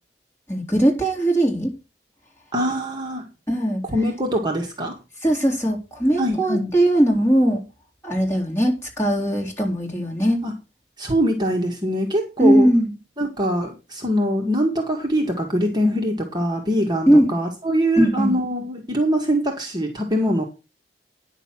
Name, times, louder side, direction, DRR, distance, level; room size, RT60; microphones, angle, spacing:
voice 1, 0.5-1.7 3.5-3.8 5.2-7.6 8.0-10.5 12.4-12.9 17.1-17.3 18.0-18.3, right 1 dB, 15° left, 3.7 m, -19 dB
voice 2, 2.5-3.3 3.8-5.0 6.2-6.7 10.4-10.5 11.0-12.7 13.2-20.4, equal, 25° right, 1.9 m, -23 dB
10.0 x 6.7 x 6.2 m
head